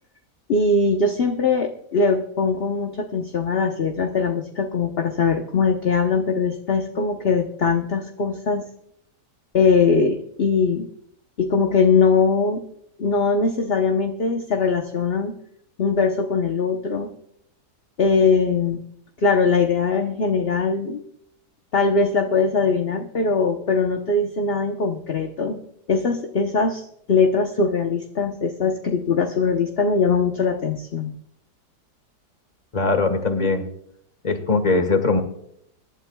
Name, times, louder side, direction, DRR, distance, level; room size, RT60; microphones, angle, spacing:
voice 1, 0.5-8.6 9.5-10.9 11.4-12.6 13.0-15.3 15.8-17.1 18.0-18.8 19.2-21.0 21.7-25.6 25.9-31.1, left 4 dB, 40° left, 3 dB, 1.0 m, -21 dB
voice 2, 32.7-33.7 34.2-35.2, left 3 dB, 25° left, 8 dB, 1.4 m, -20 dB
25.0 x 11.5 x 2.3 m, 0.71 s
omnidirectional pair, 1.8 m